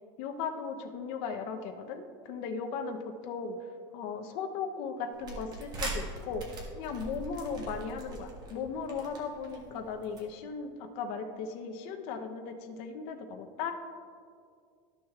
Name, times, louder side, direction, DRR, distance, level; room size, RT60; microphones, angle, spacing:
voice 1, 0.2-3.0 3.2-13.7, left 5 dB, 55° left, 6 dB, 0.8 m, -37 dB
sound 1, 5.1-10.2, right 2 dB, 35° right, 1.6 m, -41 dB
13.0 x 6.4 x 2.4 m, 2.3 s
supercardioid pair, 150°, 12 cm